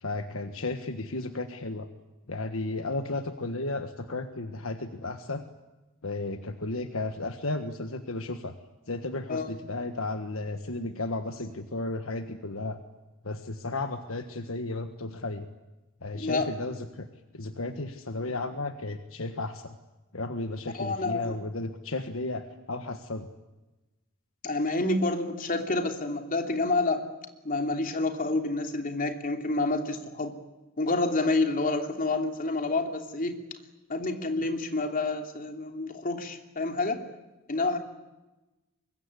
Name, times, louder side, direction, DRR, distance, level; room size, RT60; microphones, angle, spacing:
voice 1, 0.0-1.9 2.3-5.5 6.0-8.5 8.9-12.8 13.2-15.5 16.0-17.1 17.3-19.7 20.1-23.3 34.4-34.5, left 2 dB, 70° left, 7 dB, 1.6 m, -34 dB
voice 2, 16.1-16.5 20.7-21.4 24.4-27.0 27.4-30.4 30.8-33.4 33.9-37.0 37.5-37.8, left 2 dB, 40° left, 5 dB, 3.0 m, -28 dB
24.5 x 22.5 x 9.9 m, 1.1 s
head